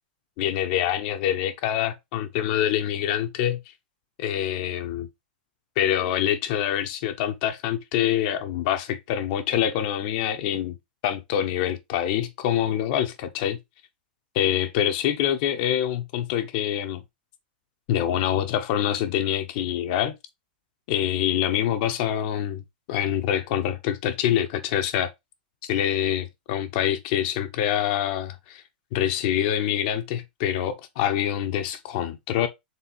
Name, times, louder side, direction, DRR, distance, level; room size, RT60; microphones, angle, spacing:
voice 1, 0.4-3.6 4.2-5.1 5.8-10.8 11.0-13.6 14.3-17.0 17.9-20.1 20.9-22.6 22.9-25.1 25.6-28.6 28.9-32.5, left 10 dB, 50° left, 0.5 m, -25 dB
4.1 x 3.3 x 2.9 m
hypercardioid pair, 120°, 5 cm